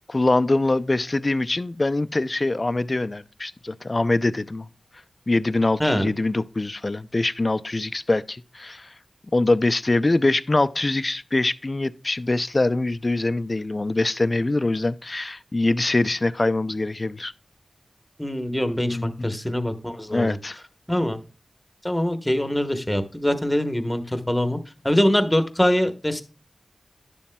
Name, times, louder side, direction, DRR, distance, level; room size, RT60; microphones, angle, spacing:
voice 1, 0.1-4.7 5.3-8.9 9.3-17.3 18.9-19.3 20.1-20.6, left 2 dB, 35° left, 0.4 m, -23 dB
voice 2, 5.8-6.1 18.2-20.4 20.9-21.2 21.8-24.6 24.8-26.2, equal, 5° left, 1.0 m, -23 dB
10.5 x 7.1 x 2.2 m
wide cardioid pair, 70°, 0 cm